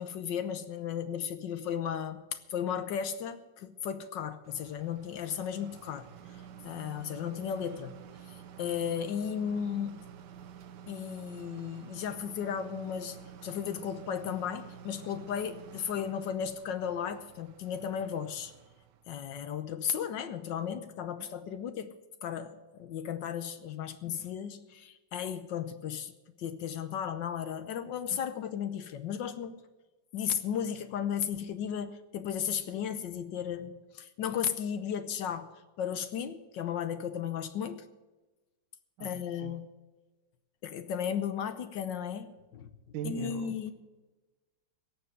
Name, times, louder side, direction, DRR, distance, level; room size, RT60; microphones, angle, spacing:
voice 1, 0.0-6.1 6.6-8.0 8.3-10.0 10.9-13.2 13.4-18.5 19.1-22.0 22.2-26.1 26.4-29.6 30.1-35.5 35.8-37.8 39.0-39.7 40.6-42.7 43.0-43.7, left 8 dB, 75° left, 11 dB, 1.4 m, -35 dB
sound 1, 4.4-19.1, right 9 dB, 65° right, 1.4 m, -50 dB
voice 2, 39.0-39.6 42.9-43.6, right 7 dB, 85° right, 8 dB, 1.8 m, -40 dB
17.0 x 7.2 x 7.7 m, 1.2 s
omnidirectional pair, 2.1 m